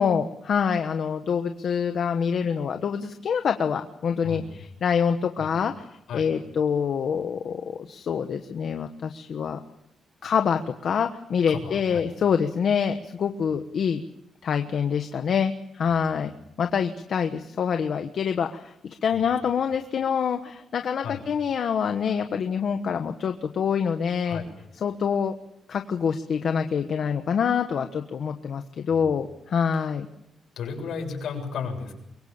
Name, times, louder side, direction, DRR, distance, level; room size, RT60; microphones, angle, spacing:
voice 1, 0.0-5.7 6.1-9.6 10.2-14.0 14.4-16.3 16.6-24.4 24.8-25.3 25.7-30.1, left 7 dB, 50° left, 6 dB, 1.2 m, -26 dB
voice 2, 11.5-12.1 19.1-19.2 21.0-21.3 24.3-24.5 28.9-29.1 29.7-29.9 30.6-31.9, left 6 dB, 70° left, 2 dB, 7.3 m, -35 dB
24.5 x 23.0 x 7.2 m, 0.80 s
wide cardioid pair, 170°, 0 cm